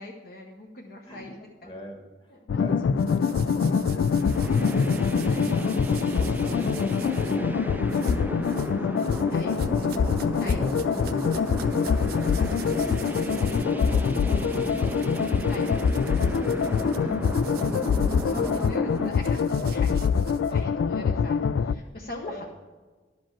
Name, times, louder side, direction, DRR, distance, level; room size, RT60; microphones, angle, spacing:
voice 1, 0.0-1.7 2.3-2.6 5.3-5.6 9.3-9.6 10.4-10.6 12.4-13.3 15.5-15.8 18.3-19.4 19.7-20.0 20.5-22.4, left 2 dB, 50° left, -1 dB, 1.0 m, -41 dB
voice 2, 1.6-5.8 6.2-10.1 10.5-12.8 13.7-15.9 16.2-18.6 19.3-19.9 20.3-20.6 21.8-21.9 22.2-22.5, equal, 30° left, 1 dB, 1.8 m, -43 dB
sound 1, 2.5-21.7, left 6 dB, 85° left, 0.3 m, -25 dB
sound 2, 3.0-7.4 7.9-8.7 9.0-20.9, right 8 dB, 55° right, 0.6 m, -46 dB
sound 3, 4.1-19.1, right 1 dB, 10° right, 0.3 m, -34 dB
11.5 x 5.2 x 7.2 m, 1.3 s
head